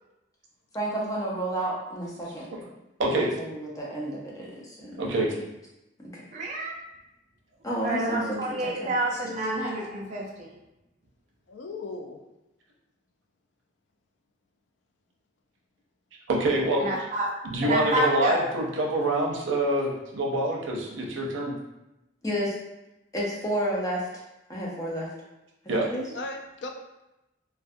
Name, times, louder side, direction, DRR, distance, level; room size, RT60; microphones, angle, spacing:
voice 1, 0.7-2.5 3.1-5.0 6.0-6.2 7.6-8.4 8.8-8.9 22.2-22.6 23.1-24.2 24.5-25.1 25.6-26.0, right 1 dB, 20° left, -5 dB, 0.5 m, -31 dB
voice 2, 5.0-5.3 16.3-16.9 17.5-21.5 25.7-25.8, right 1 dB, 90° right, -2 dB, 0.6 m, -26 dB
voice 3, 6.3-6.7 7.8-10.6 16.8-17.4 17.6-18.4, right 1 dB, 40° right, -2 dB, 0.5 m, -28 dB
voice 4, 11.5-12.2 26.1-26.7, left 3 dB, 70° left, 3 dB, 0.3 m, -37 dB
2.4 x 2.2 x 2.5 m, 0.95 s
head